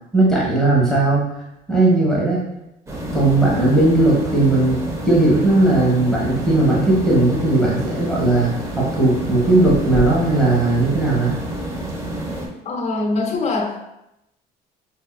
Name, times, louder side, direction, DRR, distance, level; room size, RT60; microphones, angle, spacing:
voice 1, 0.1-1.3 1.7-2.4 3.1-11.4, right 2 dB, 5° left, -6 dB, 1.1 m, -17 dB
sound 1, 2.9-12.5, right 1 dB, 15° right, 0.8 m, -28 dB
voice 2, 12.6-13.8, left 3 dB, 40° left, 2 dB, 0.7 m, -23 dB
5.4 x 2.6 x 2.2 m, 0.86 s
cardioid pair, 110°, 17 cm